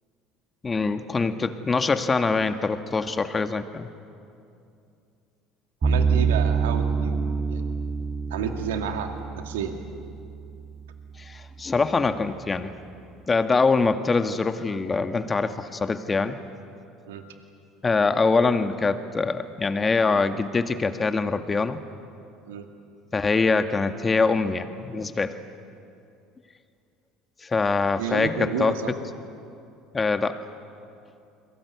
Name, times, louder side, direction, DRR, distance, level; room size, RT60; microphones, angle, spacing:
voice 1, 0.6-3.9 11.2-12.7 13.3-16.4 17.8-21.8 23.1-25.4 27.4-28.7 29.9-30.4, left 4 dB, 25° left, 8 dB, 1.9 m, -24 dB
sound 1, 5.8-10.9, right 5 dB, 35° right, 6.0 m, -26 dB
voice 2, 5.8-7.7 8.3-9.7 17.1-17.2 22.5-22.7 28.0-28.9, right 7 dB, 80° right, 5 dB, 2.2 m, -31 dB
29.5 x 22.5 x 8.4 m, 2.6 s
hypercardioid pair, 70°, 0 cm